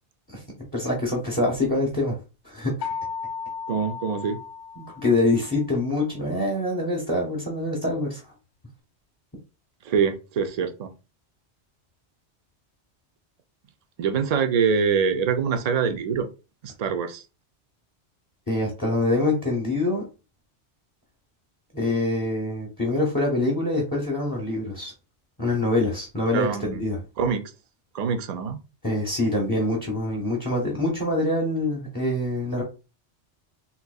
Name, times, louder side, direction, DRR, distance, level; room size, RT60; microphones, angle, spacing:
voice 1, 0.7-2.2 2.4-2.9 4.8-8.2 18.5-20.0 21.7-24.9 25.4-27.0 28.8-32.6, left 2 dB, 20° left, 0 dB, 0.7 m, -25 dB
sound 1, 2.8-5.6, left 6 dB, 80° left, 0.9 m, -35 dB
voice 2, 3.7-4.4 9.9-10.9 14.0-16.3 16.6-17.2 26.3-26.8 27.2-27.4 27.9-28.6, right 6 dB, 55° right, 7 dB, 0.4 m, -24 dB
3.8 x 2.6 x 2.3 m, 0.30 s
omnidirectional pair, 1.2 m